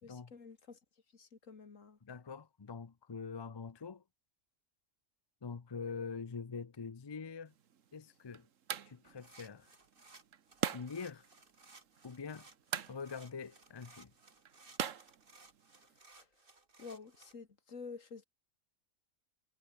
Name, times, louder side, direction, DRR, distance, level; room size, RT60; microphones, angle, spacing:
voice 1, 0.0-0.8 1.1-2.0 16.1-16.3 16.8-18.2, left 5 dB, 70° left, 2.5 m, -50 dB
voice 2, 2.0-4.0 5.4-7.5 7.9-8.5 8.9-9.7 10.7-11.2 12.0-12.5 12.9-14.1, left 5 dB, 30° left, 0.5 m, -44 dB
sound 1, 7.5-16.0, right 8 dB, 75° right, 1.4 m, -44 dB
sound 2, 9.1-17.3, right 3 dB, 40° right, 2.6 m, -61 dB
omnidirectional pair, 1.4 m